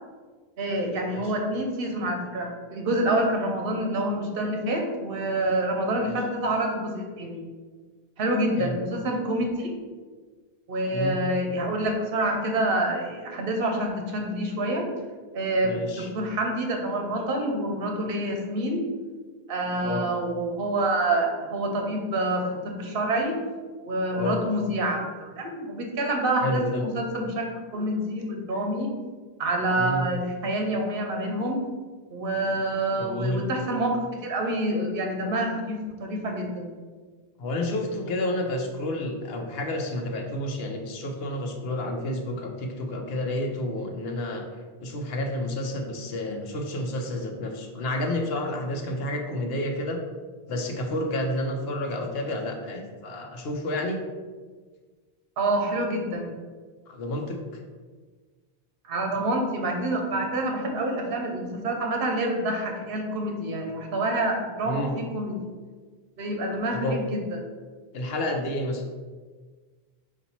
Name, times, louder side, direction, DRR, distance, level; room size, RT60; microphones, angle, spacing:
voice 1, 0.6-7.4 8.2-9.7 10.7-14.9 15.3-18.8 19.5-23.4 23.8-28.9 29.4-31.6 32.1-36.7 55.4-56.3 58.9-65.4 66.2-67.4, right 1 dB, 65° right, 2 dB, 0.9 m, -27 dB
voice 2, 15.6-16.1 19.8-20.0 24.1-24.4 26.4-26.8 29.8-30.0 33.0-33.4 37.4-44.5 44.8-50.0 50.5-54.0 56.9-57.6 64.6-65.0 66.7-67.0 67.9-68.8, left 1 dB, 75° left, 3 dB, 0.9 m, -30 dB
4.2 x 2.6 x 4.1 m, 1.4 s
omnidirectional pair, 1.0 m